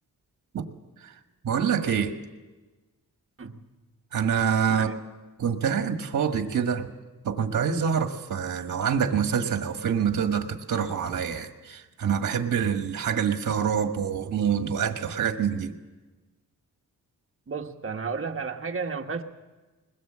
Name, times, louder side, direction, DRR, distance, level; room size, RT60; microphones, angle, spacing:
voice 1, 1.4-2.1 4.1-4.9 5.4-6.9 7.2-15.7, right 7 dB, 60° right, 6 dB, 1.6 m, -26 dB
voice 2, 17.5-19.2, right 5 dB, 40° right, 4 dB, 1.2 m, -32 dB
21.0 x 20.5 x 7.5 m, 1.2 s
wide cardioid pair, 150°, 34 cm